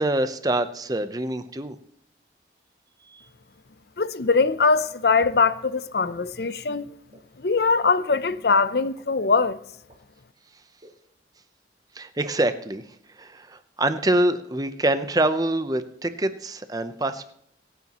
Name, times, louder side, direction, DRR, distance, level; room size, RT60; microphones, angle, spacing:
voice 1, 0.0-1.8 3.1-3.2 11.9-12.8 13.2-17.3, right 1 dB, 20° right, 0.7 m, -25 dB
voice 2, 4.0-6.9 7.4-9.6, left 4 dB, 65° left, 0.6 m, -22 dB
sound 1, 6.2-6.3 7.1-7.2 8.0-8.1 9.0-9.1 9.9-10.0 10.8-10.9, right 1 dB, 35° right, 4.4 m, -50 dB
24.0 x 9.5 x 3.0 m
head